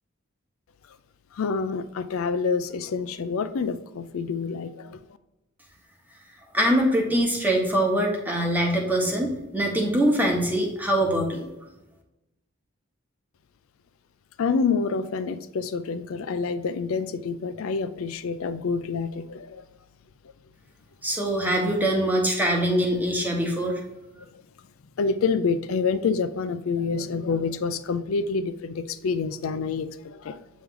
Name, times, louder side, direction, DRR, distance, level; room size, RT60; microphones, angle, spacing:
voice 1, 1.3-5.0 14.4-19.6 24.2-24.3 25.0-30.4, left 5 dB, 80° left, 12 dB, 0.4 m, -27 dB
voice 2, 6.5-11.5 21.0-23.8, right 1 dB, 10° right, 0 dB, 1.0 m, -23 dB
8.1 x 3.1 x 3.7 m, 0.98 s
head